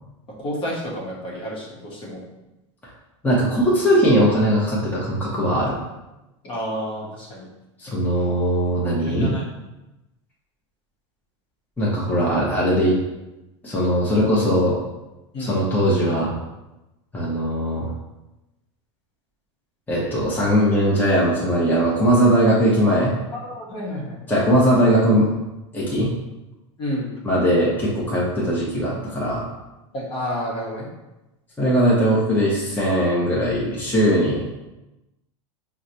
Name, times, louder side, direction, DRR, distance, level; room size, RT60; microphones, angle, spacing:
voice 1, 0.4-2.2 6.4-7.5 8.3-8.4 9.1-9.4 15.3-15.6 23.3-24.2 24.5-24.7 26.8-27.1 29.9-30.9, equal, 35° left, -4 dB, 1.1 m, -30 dB
voice 2, 3.2-5.8 7.8-9.3 11.8-12.9 13.6-14.8 15.4-16.3 17.1-17.9 19.9-23.1 24.3-25.3 25.7-26.1 27.2-29.4 31.6-34.4, equal, 10° left, -6 dB, 1.0 m, -19 dB
4.6 x 2.2 x 2.8 m, 0.99 s
hypercardioid pair, 110°, 16 cm